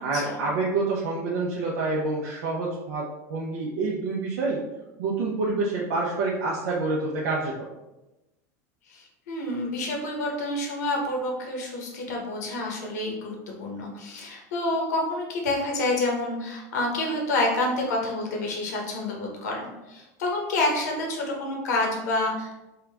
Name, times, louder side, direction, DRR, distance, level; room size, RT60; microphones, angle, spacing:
voice 1, 0.0-4.6 5.0-7.7, right 3 dB, 80° right, -5 dB, 0.7 m, -27 dB
voice 2, 8.9-22.6, left 2 dB, 90° left, 0 dB, 1.0 m, -28 dB
3.7 x 2.3 x 3.4 m, 0.99 s
supercardioid pair, 130°, 9 cm